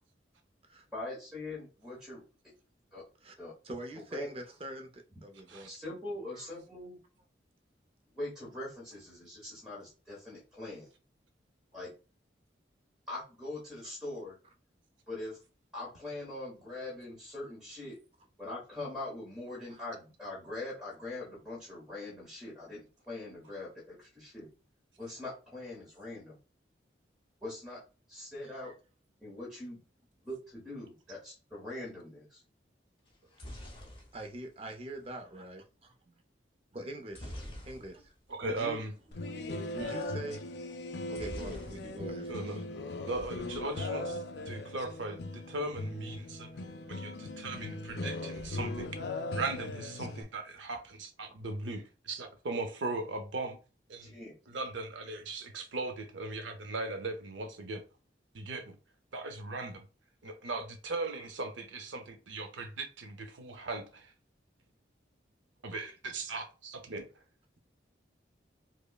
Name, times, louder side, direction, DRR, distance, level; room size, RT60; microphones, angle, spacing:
voice 1, 0.9-2.2 2.9-3.0 3.4-3.5 4.0-4.3 5.7-7.0 8.1-10.9 11.7-11.9 13.1-14.4 15.1-15.4 15.7-18.0 18.4-24.5 25.0-26.4 27.4-27.8 28.1-28.7 29.2-29.8 30.2-32.4 54.0-54.3, left 2 dB, 5° right, 1.0 m, -42 dB
voice 2, 3.6-5.7 6.3-6.5 19.7-19.8 28.6-28.7 34.1-35.9 36.7-37.3 37.7-37.9 38.4-38.9 39.7-40.5 41.1-42.6, right 1 dB, 30° right, 0.4 m, -43 dB
sound 1, 33.1-35.2 37.1-38.3 38.6-38.7 39.0-39.2 41.1-42.3 42.6-43.2, equal, 30° left, 0.8 m, -46 dB
voice 3, 38.4-38.9 39.8-39.9 42.3-42.6 43.1-46.5 46.9-48.9 49.3-53.6 53.9-54.1 54.5-57.8 58.3-58.7 59.1-59.9 60.2-64.1 65.6-67.1, right 2 dB, 85° right, 0.6 m, -38 dB
sound 2, 39.1-50.2, left 2 dB, 65° left, 0.4 m, -39 dB
5.2 x 2.0 x 2.3 m
head